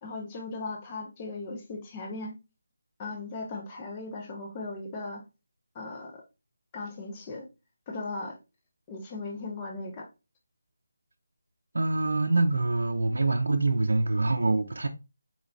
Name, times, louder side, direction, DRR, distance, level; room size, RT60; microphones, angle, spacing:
voice 1, 0.0-2.4 3.0-5.2 5.7-6.2 6.7-7.5 7.9-8.4 8.9-10.1, left 3 dB, 15° left, 0.5 m, -37 dB
voice 2, 11.7-14.9, right 2 dB, 70° right, 0.5 m, -25 dB
4.2 x 3.0 x 2.5 m
figure-of-eight pair, 180°, 0 cm